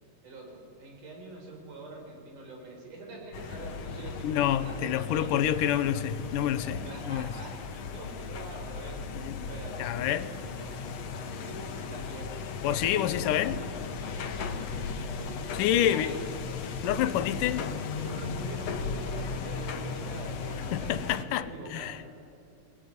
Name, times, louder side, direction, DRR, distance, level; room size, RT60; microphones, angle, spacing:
voice 1, 0.2-5.7 6.4-10.8 11.1-12.4 12.7-13.0 13.9-16.2 16.8-17.0 17.9-22.0, right 2 dB, 70° right, 1 dB, 5.8 m, -44 dB
sound 1, 3.3-21.2, left 5 dB, 60° left, 2.2 m, -36 dB
voice 2, 4.2-6.8 7.1-7.3 9.2-9.3 9.8-10.3 12.6-13.6 15.6-16.1 16.8-17.7 20.7-22.0, left 11 dB, 80° left, 14 dB, 2.4 m, -27 dB
22.5 x 19.0 x 9.5 m, 2.6 s
omnidirectional pair, 3.7 m